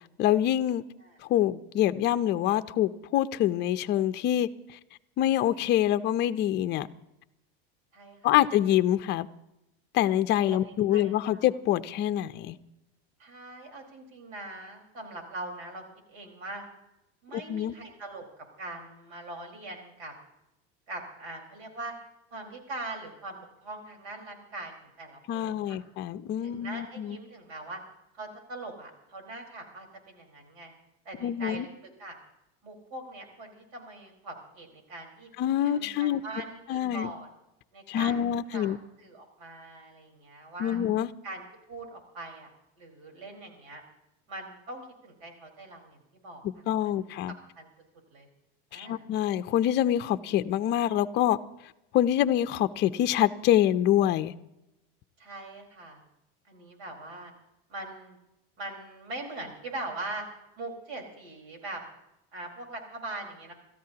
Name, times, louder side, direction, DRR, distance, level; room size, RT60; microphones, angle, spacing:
voice 1, 0.2-0.8 1.3-4.5 5.2-6.9 8.2-9.3 9.9-12.6 17.3-17.7 25.3-27.2 31.2-31.7 35.4-36.2 36.7-37.1 37.9-38.8 40.6-41.1 46.7-47.3 48.7-51.4 51.9-54.3, left 12 dB, 35° left, 10 dB, 0.6 m, -25 dB
voice 2, 7.9-8.4 10.5-11.5 13.2-15.8 16.1-16.7 17.2-18.2 18.6-20.1 20.9-21.9 22.3-24.7 25.0-25.8 26.4-27.8 28.1-30.7 31.0-31.7 32.0-32.2 32.6-35.3 35.6-37.3 37.7-40.8 41.2-42.5 42.8-43.8 44.3-47.7 48.1-48.3 48.7-49.1 55.2-56.0 56.5-57.3 57.7-58.2 58.6-60.3 60.6-61.8 62.3-63.5, right 2 dB, 75° right, 2 dB, 4.6 m, -42 dB
28.0 x 13.5 x 2.9 m, 0.89 s
supercardioid pair, 135°, 31 cm